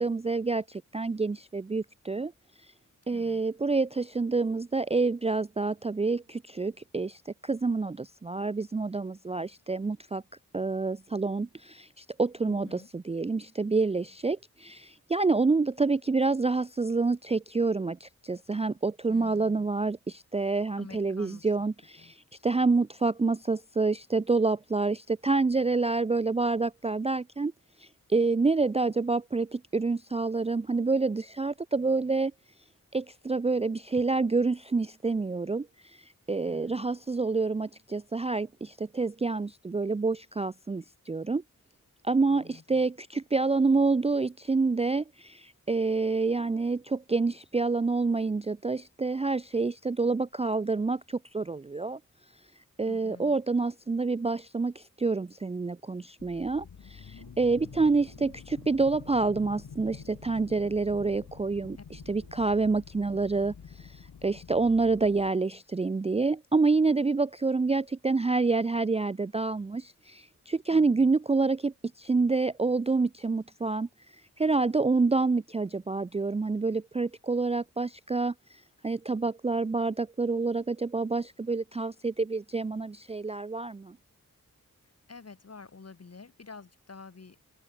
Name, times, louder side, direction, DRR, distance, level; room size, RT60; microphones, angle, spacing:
voice 1, 0.0-2.3 3.1-10.2 10.5-22.2 22.4-27.5 27.8-32.3 32.9-35.7 36.3-41.4 42.0-52.0 52.8-61.8 62.1-63.5 63.8-73.9 74.4-78.3 78.8-84.0, right 3 dB, 20° right, 0.4 m, -28 dB
voice 2, 3.1-3.4 12.5-12.9 19.1-19.7 20.8-21.5 22.0-22.1 36.4-36.8 42.3-42.8 52.9-53.4 57.6-57.9 61.8-61.9 70.7-71.1 85.1-87.4, left 4 dB, 45° left, 2.6 m, -49 dB
sound 1, 56.2-65.3, left 7 dB, 75° left, 1.9 m, -48 dB
sound 2, 57.2-62.8 63.6-63.8, right 6 dB, 80° right, 7.3 m, -58 dB
wide cardioid pair, 80°, 34 cm